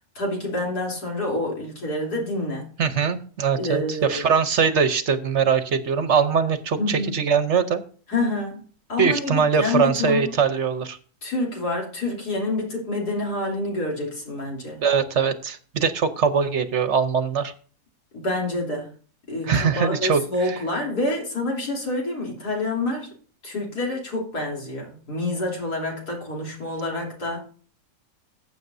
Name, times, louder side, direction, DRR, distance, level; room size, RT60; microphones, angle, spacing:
voice 1, 0.2-2.7 3.6-4.3 6.8-7.2 8.1-8.6 8.9-10.3 11.2-14.8 18.1-18.9 19.3-23.1 23.4-27.4, left 2 dB, 80° left, 3.8 m, -27 dB
voice 2, 2.8-3.8 4.1-7.8 9.0-11.0 14.8-17.5 19.5-20.5, right 6 dB, 55° right, 1.0 m, -22 dB
15.0 x 8.0 x 2.7 m
omnidirectional pair, 1.7 m